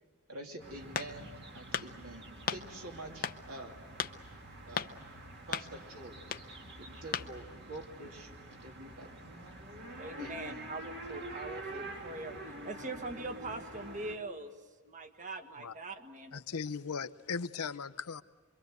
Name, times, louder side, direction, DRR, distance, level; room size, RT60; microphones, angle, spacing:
voice 1, 0.3-1.3 1.5-3.8 4.7-5.0 5.5-6.2 6.7-8.4 8.6-9.3 10.2-10.7, right 1 dB, 70° right, 2 dB, 2.9 m, -47 dB
sound 1, 0.6-14.2, right 2 dB, 50° right, 2.1 m, -47 dB
sound 2, 1.0-1.4 1.7-1.9 2.5-2.6 3.2-3.4 4.0-4.1 4.7-4.9 5.5-5.7 6.3-6.4 7.1-7.3, left 7 dB, 40° left, 0.8 m, -35 dB
voice 2, 10.0-12.3 12.6-14.5 14.8-16.4, right 2 dB, 35° right, 7 dB, 1.6 m, -42 dB
voice 3, 16.3-18.2, left 5 dB, 80° left, 12 dB, 0.7 m, -38 dB
26.0 x 23.5 x 8.0 m, 1.3 s
head